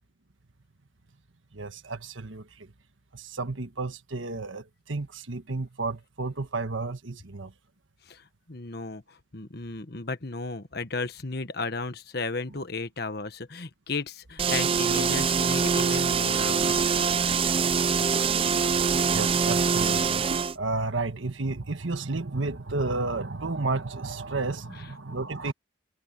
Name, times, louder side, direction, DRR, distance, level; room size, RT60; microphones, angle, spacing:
voice 1, 1.5-2.7 3.1-7.5 19.1-25.5, right 3 dB, 85° right, 1.5 m, -32 dB
voice 2, 8.1-16.9, left 3 dB, 55° left, 1.4 m, -34 dB
sound 1, 14.4-20.6, right 6 dB, 30° right, 0.4 m, -24 dB
head